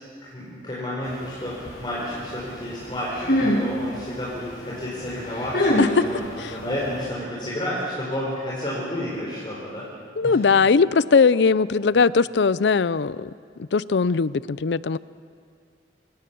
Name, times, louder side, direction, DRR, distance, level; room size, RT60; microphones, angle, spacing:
voice 1, 0.2-9.9 10.2-10.4, left 1 dB, 25° left, -7 dB, 4.6 m, -31 dB
sound 1, 1.0-7.1, left 1 dB, 60° left, 7.4 m, -28 dB
voice 2, 10.2-13.3 13.6-15.0, left 5 dB, 85° left, 19 dB, 0.5 m, -20 dB
27.5 x 17.5 x 7.0 m, 2.2 s
head